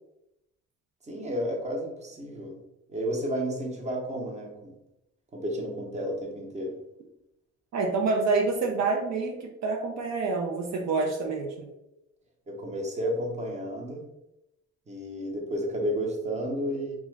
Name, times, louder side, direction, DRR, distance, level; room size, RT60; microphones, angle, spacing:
voice 1, 1.1-2.6 2.9-4.7 5.3-6.8 12.5-14.0 14.9-16.9, equal, 25° right, 1 dB, 0.7 m, -32 dB
voice 2, 7.7-11.7, right 4 dB, 60° right, 1 dB, 0.5 m, -27 dB
2.4 x 2.3 x 3.1 m, 0.87 s
cardioid pair, 90°, 30 cm